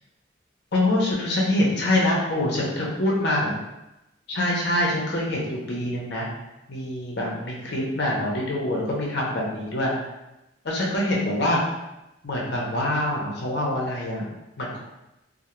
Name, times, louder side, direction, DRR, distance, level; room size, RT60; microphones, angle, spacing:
voice 1, 0.7-3.5 4.3-6.3 6.7-9.9 10.6-11.6 12.2-14.2 14.6-14.8, left 1 dB, 55° left, -3 dB, 0.7 m, -25 dB
2.3 x 2.0 x 2.9 m, 0.94 s
head